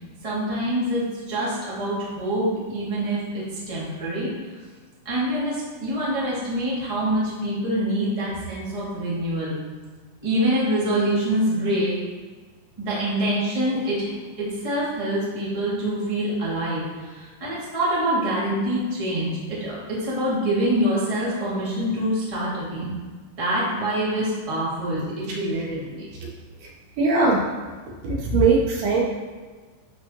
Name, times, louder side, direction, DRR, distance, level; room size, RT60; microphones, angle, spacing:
voice 1, 0.2-4.3 5.0-9.5 10.2-12.0 12.8-22.9 23.4-26.1, right 1 dB, 20° right, -8 dB, 0.9 m, -25 dB
voice 2, 27.0-27.4 28.0-29.0, right 3 dB, 75° right, -2 dB, 2.8 m, -20 dB
11.5 x 4.1 x 3.0 m, 1.4 s
omnidirectional pair, 4.7 m